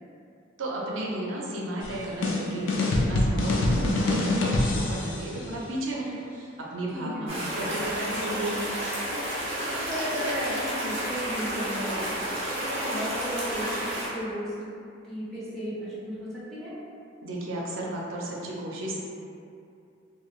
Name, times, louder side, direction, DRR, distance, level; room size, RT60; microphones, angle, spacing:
voice 1, 0.6-8.7 17.2-19.0, right 1 dB, 85° right, -3 dB, 0.5 m, -33 dB
sound 1, 1.8-5.3, left 2 dB, 75° left, 0.4 m, -25 dB
voice 2, 6.9-7.3 9.6-12.1 12.5-14.6 15.0-16.7, equal, ahead, -12 dB, 0.7 m, -34 dB
sound 2, 7.3-14.1, right 1 dB, 35° right, 0.7 m, -31 dB
3.0 x 2.2 x 2.3 m, 2.5 s
head